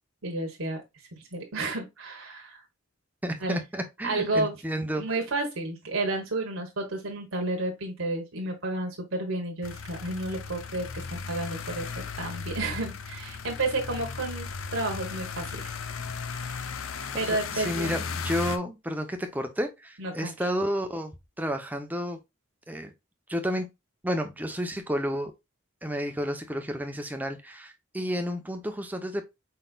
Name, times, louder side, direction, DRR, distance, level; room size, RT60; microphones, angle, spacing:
voice 1, 0.2-0.8 1.1-2.6 3.4-3.6 4.0-4.6 4.9-15.7 16.5-16.6 17.1-18.0 20.0-20.3, right 2 dB, 80° right, 1.3 m, -31 dB
voice 2, 3.2-5.1 17.3-22.2 22.7-22.9 23.3-23.7 24.0-25.3 25.8-29.2, equal, 10° right, 0.8 m, -31 dB
sound 1, 9.6-18.6, left 5 dB, 80° left, 0.6 m, -36 dB
5.4 x 4.0 x 2.4 m
head